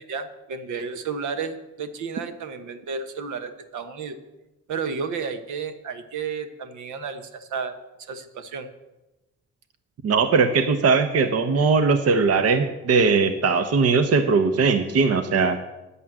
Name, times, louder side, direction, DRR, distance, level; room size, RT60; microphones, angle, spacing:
voice 1, 0.0-4.2 4.7-7.8 8.1-8.7, right 5 dB, 75° right, 9 dB, 1.3 m, -32 dB
voice 2, 10.0-15.6, right 4 dB, 55° right, 9 dB, 1.0 m, -20 dB
9.7 x 8.5 x 7.5 m, 1.0 s
cardioid pair, 90°, 30 cm